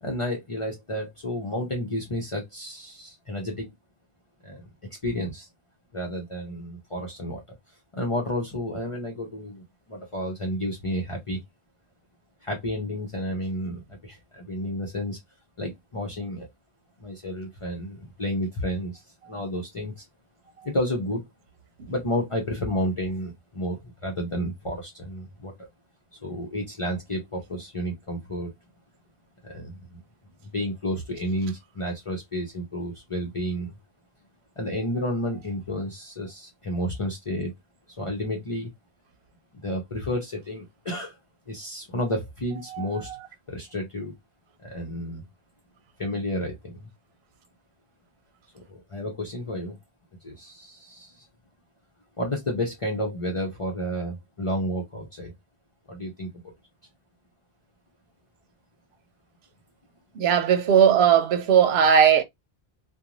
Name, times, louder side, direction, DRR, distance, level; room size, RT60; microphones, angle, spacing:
voice 1, 0.0-3.7 4.4-4.6 5.0-5.5 5.9-7.4 7.9-11.4 12.4-15.2 15.6-16.5 17.0-20.0 20.6-21.2 21.9-25.7 26.2-28.5 29.4-30.0 30.4-33.7 34.6-37.5 38.0-38.7 39.6-41.2 41.5-43.1 43.5-44.1 44.6-45.2 46.0-46.9 48.5-49.8 50.2-51.2 52.2-55.3 55.9-56.5, equal, 35° left, 0.7 m, -31 dB
voice 2, 60.2-62.2, right 8 dB, 80° right, 0.9 m, -18 dB
2.5 x 2.2 x 3.0 m
omnidirectional pair, 1.1 m